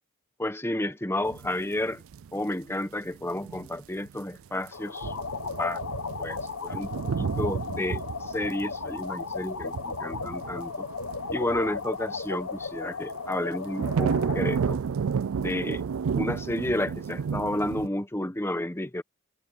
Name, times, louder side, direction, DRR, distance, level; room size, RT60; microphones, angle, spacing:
voice 1, 0.4-2.0 2.3-5.1 5.6-5.8 6.2-6.4 6.6-6.9 7.2-10.9 11.3-14.8 15.4-15.8 16.2-19.0, left 1 dB, 10° left, 1.1 m, -31 dB
sound 1, 1.3-2.8 3.1-3.7 4.1-4.2 4.5-4.7 5.0-12.7 13.1-17.9, right 6 dB, 70° right, 0.4 m, -32 dB
sound 2, 4.7-14.7, left 5 dB, 70° left, 1.1 m, -36 dB
head